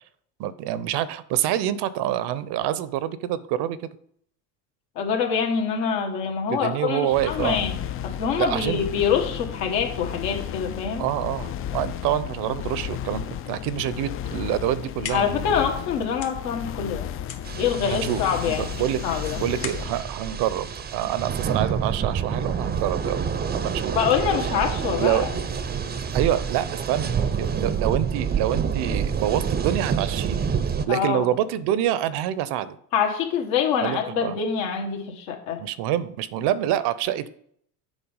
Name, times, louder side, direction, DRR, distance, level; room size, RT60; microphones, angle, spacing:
voice 1, 0.4-3.8 6.5-7.6 8.4-8.8 11.0-15.3 17.9-23.3 23.5-24.0 24.4-24.5 25.0-25.3 25.8-30.5 30.9-32.8 33.8-34.4 35.6-37.3, right 11 dB, 60° right, 16 dB, 0.7 m, -26 dB
voice 2, 5.0-7.7 8.0-11.1 15.1-17.1 17.6-18.7 19.0-19.4 23.9-25.3 30.9-31.3 32.9-35.6, left 7 dB, 70° left, 2 dB, 1.9 m, -25 dB
sound 1, 7.1-20.1, left 10 dB, 30° left, 0.4 m, -33 dB
sound 2, 14.7-21.5, left 8 dB, 50° left, 1.4 m, -42 dB
sound 3, 17.4-30.8, right 6 dB, 20° right, 0.6 m, -28 dB
7.2 x 4.4 x 5.3 m, 0.65 s
hypercardioid pair, 80°, 48 cm